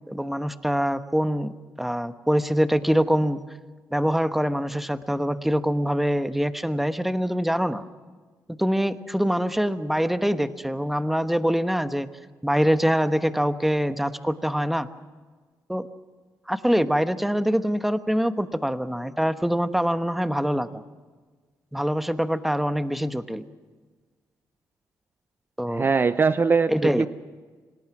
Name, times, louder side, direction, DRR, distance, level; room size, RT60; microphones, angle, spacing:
voice 1, 0.1-1.5 1.8-3.4 3.9-7.8 8.6-12.1 12.4-14.9 15.7-15.9 16.5-20.8 21.7-23.4 25.6-25.9 26.7-27.1, equal, 5° right, 10 dB, 1.1 m, -24 dB
voice 2, 25.7-27.1, right 5 dB, 30° right, 13 dB, 0.6 m, -21 dB
26.0 x 18.5 x 6.0 m, 1.4 s
cardioid pair, 80°, 7 cm